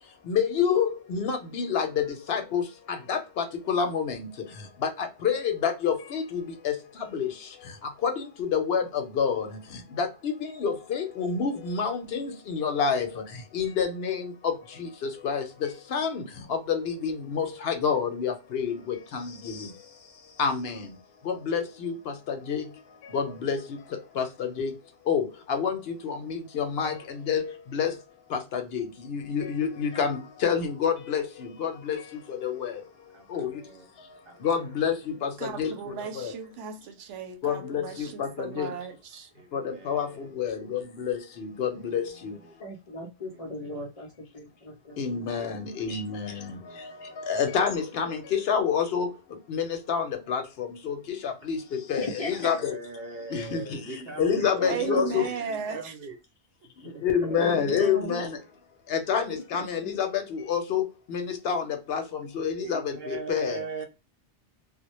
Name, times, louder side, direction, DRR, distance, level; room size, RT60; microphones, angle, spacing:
voice 1, 0.0-24.7 25.0-28.0 28.3-36.4 37.4-38.8 39.5-42.4 45.0-52.8 53.3-55.3 56.8-58.4 58.9-63.6, left 7 dB, 65° left, 0.8 m, -29 dB
voice 2, 33.1-33.9 34.3-34.4 38.2-38.4 39.3-40.3 42.2-42.3 43.3-43.8 45.4-46.2 46.6-47.3 52.3-54.5 54.8-56.2 56.8-57.5 62.6-63.9, right 4 dB, 65° right, 0.7 m, -41 dB
voice 3, 35.4-39.3 54.6-55.9, right 7 dB, 90° right, 0.9 m, -36 dB
voice 4, 42.6-44.1 44.3-45.0 52.0-52.5 54.6-55.3 57.2-58.2, left 2 dB, 50° left, 0.4 m, -36 dB
2.1 x 2.0 x 2.9 m
omnidirectional pair, 1.2 m